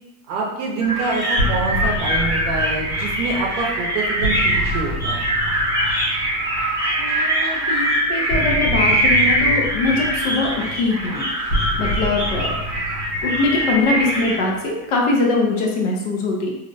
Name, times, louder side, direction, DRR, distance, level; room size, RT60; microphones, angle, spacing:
voice 1, 0.3-5.2, right 4 dB, 50° right, -1 dB, 0.7 m, -26 dB
sound 1, 0.8-14.4, right 1 dB, 5° right, 0.7 m, -22 dB
sound 2, 1.4-7.1 8.3-14.6, left 1 dB, 75° left, 1.1 m, -28 dB
voice 2, 7.0-11.3 11.8-12.6 13.2-16.5, left 3 dB, 55° left, -1 dB, 0.7 m, -22 dB
2.6 x 2.0 x 2.6 m, 0.96 s
supercardioid pair, 130°, 45 cm